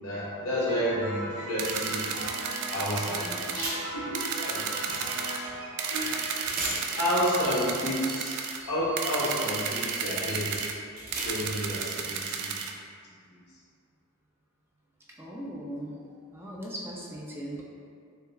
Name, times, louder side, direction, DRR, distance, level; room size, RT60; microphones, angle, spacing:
voice 1, 0.0-2.1 2.7-5.1 5.4-5.5 5.9-6.6 7.0-8.4 8.7-10.7 11.1-12.5, equal, 75° left, -6 dB, 1.0 m, -31 dB
Piano, 0.7-7.5, right 1 dB, 65° right, 1.1 m, -39 dB
sound 1, 1.6-3.7 4.1-5.4 5.8-8.6 9.0-10.7 11.1-12.7, right 6 dB, 85° right, 0.4 m, -33 dB
sound 2, 3.6-4.1 6.0-6.1 6.4-11.7, right 1 dB, 40° right, 0.7 m, -40 dB
voice 2, 15.2-16.0 16.3-17.6, right 1 dB, 10° right, -4 dB, 0.4 m, -38 dB
6.6 x 2.2 x 2.3 m, 2.2 s
head